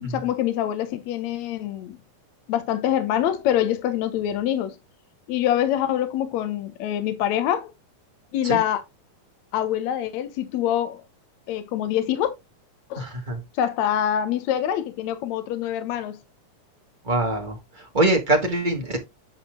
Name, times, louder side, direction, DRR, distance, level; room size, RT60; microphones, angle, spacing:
voice 1, 0.0-2.0 2.5-4.8 5.3-7.7 8.3-8.8 9.5-11.0 11.5-12.3 12.9-13.1 13.6-16.2, left 11 dB, 65° left, 2.1 m, -25 dB
voice 2, 13.0-13.4 17.0-17.6 17.9-19.0, right 1 dB, 20° right, 1.4 m, -23 dB
10.0 x 4.3 x 3.8 m
omnidirectional pair, 3.7 m